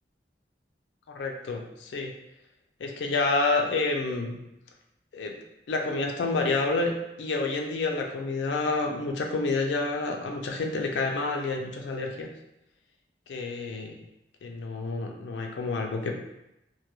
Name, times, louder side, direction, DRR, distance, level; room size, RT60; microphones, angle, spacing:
voice 1, 1.1-2.1 2.8-4.4 5.1-5.3 5.7-6.9 7.2-12.3 13.3-14.0 14.4-16.1, left 3 dB, 80° left, 2 dB, 0.4 m, -29 dB
2.3 x 2.1 x 3.0 m, 0.86 s
head